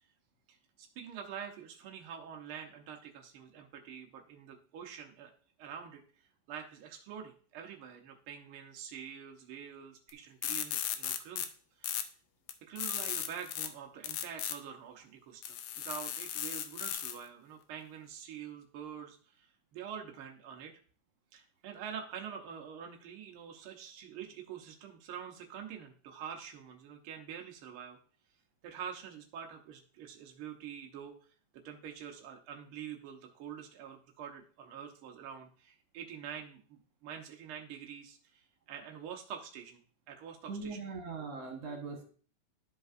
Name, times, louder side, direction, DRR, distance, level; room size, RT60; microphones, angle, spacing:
voice 1, 0.5-5.3 5.6-6.0 6.5-11.5 11.8-12.1 12.6-20.7 21.3-28.0 28.6-31.1 31.6-39.8 40.1-40.8, right 8 dB, 75° right, 2 dB, 1.2 m, -46 dB
sound 1, 10.1-10.2 10.4-11.5 11.8-12.0 12.5-13.7 14.0-14.5 15.4-17.2, left 10 dB, 80° left, 2.0 m, -36 dB
voice 2, 40.5-42.0, right 4 dB, 60° right, 1 dB, 2.1 m, -40 dB
12.0 x 5.2 x 2.5 m, 0.43 s
omnidirectional pair, 3.5 m